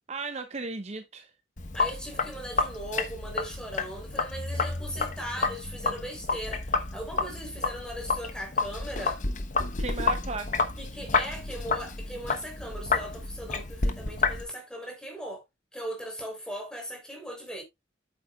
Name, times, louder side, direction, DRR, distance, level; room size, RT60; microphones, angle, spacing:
voice 1, 0.1-1.3 9.8-10.6, right 3 dB, 35° right, 0.7 m, -35 dB
Sink (filling or washing), 1.6-14.4, left 4 dB, 45° left, 1.0 m, -30 dB
voice 2, 1.7-9.2 10.8-15.4 15.7-17.6, equal, 5° left, 3.6 m, -38 dB
8.6 x 8.4 x 2.3 m
head